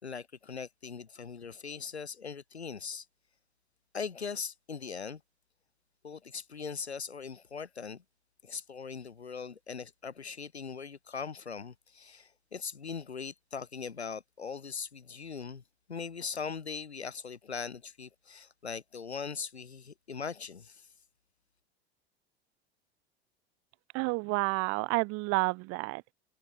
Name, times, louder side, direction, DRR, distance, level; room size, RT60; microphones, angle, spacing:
voice 1, 0.0-3.1 3.9-5.2 6.0-8.0 8.4-15.6 15.9-20.9, left 5 dB, 85° left, 6.4 m, -40 dB
voice 2, 23.9-26.1, right 27 dB, 50° right, 1.2 m, -30 dB
figure-of-eight pair, 80°, 32 cm